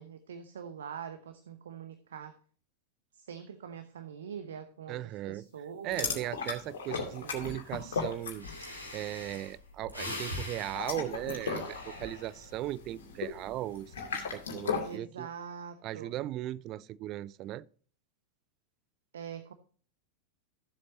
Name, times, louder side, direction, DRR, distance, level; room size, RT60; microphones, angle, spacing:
voice 1, 0.0-2.3 3.1-6.3 6.9-7.4 14.8-16.1 19.1-19.5, right 7 dB, 65° right, 0.8 m, -44 dB
voice 2, 4.9-5.5 5.8-8.5 8.9-15.3 15.8-17.7, right 14 dB, 35° right, 0.4 m, -37 dB
sound 1, 5.9-8.8 9.1-9.4 10.6-15.0, left 5 dB, 60° left, 2.5 m, -37 dB
Breathing, 8.1-8.2 8.4-12.6 13.1-13.5, left 1 dB, 85° left, 2.5 m, -42 dB
15.0 x 7.6 x 2.8 m
figure-of-eight pair, 90°, 0 cm